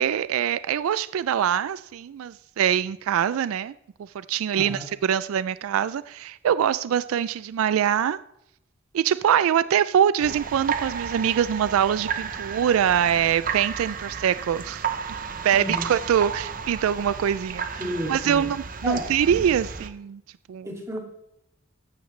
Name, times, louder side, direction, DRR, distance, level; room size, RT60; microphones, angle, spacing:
voice 1, 0.0-3.7 4.0-8.2 8.9-14.9 15.4-17.8 18.1-20.2 20.5-20.7, right 9 dB, 85° right, 0.3 m, -24 dB
sound 1, 10.2-19.9, right 6 dB, 40° right, 0.7 m, -33 dB
voice 2, 15.5-15.9 17.8-18.4 18.8-19.1 20.6-21.0, equal, 15° right, 2.4 m, -31 dB
14.5 x 12.0 x 3.2 m
head